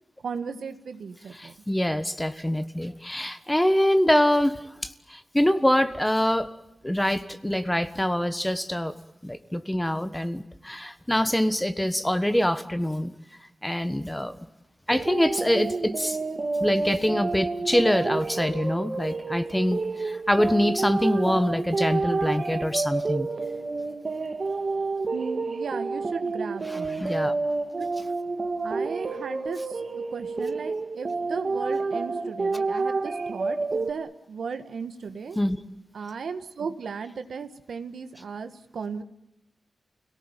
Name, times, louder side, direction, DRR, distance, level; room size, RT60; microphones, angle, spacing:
voice 1, 0.2-1.5 25.1-27.0 27.8-27.9 28.6-35.4 35.9-39.0, right 5 dB, 75° right, 9 dB, 1.7 m, -36 dB
voice 2, 1.4-4.6 5.1-6.5 6.8-8.9 9.2-13.1 13.6-14.4 14.9-16.2 16.6-23.3 27.0-27.3 35.4-35.6, left 1 dB, 10° left, 11 dB, 1.4 m, -24 dB
sound 1, 14.9-33.9, right 3 dB, 45° right, 1.8 m, -29 dB
29.5 x 18.0 x 9.1 m, 0.91 s
wide cardioid pair, 100°, 0 cm